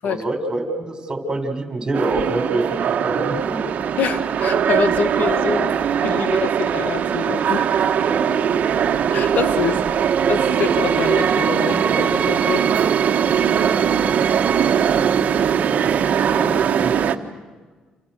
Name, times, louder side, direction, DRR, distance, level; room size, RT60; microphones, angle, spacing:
voice 1, 0.0-2.6 3.0-3.6 8.1-8.7 9.7-9.9 16.3-16.9, right 2 dB, 25° right, 5 dB, 6.3 m, -26 dB
sound 1, 1.9-17.2, right 8 dB, 55° right, 1.6 m, -20 dB
voice 2, 4.0-5.7 6.0-7.8 9.1-9.8 10.3-12.6, left 6 dB, 70° left, 11 dB, 2.0 m, -25 dB
30.0 x 28.5 x 6.6 m, 1.4 s
cardioid pair, 90°, 3 cm